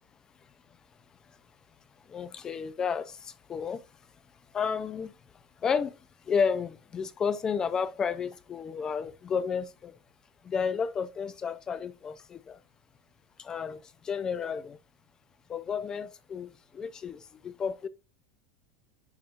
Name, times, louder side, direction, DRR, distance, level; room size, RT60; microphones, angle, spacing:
voice 1, 2.1-3.8 4.5-5.1 5.6-6.0 6.3-9.9 10.4-12.6 13.4-14.8 15.5-17.9, left 6 dB, 15° left, 0.4 m, -32 dB
10.5 x 4.1 x 2.4 m
supercardioid pair, 175°, 4 cm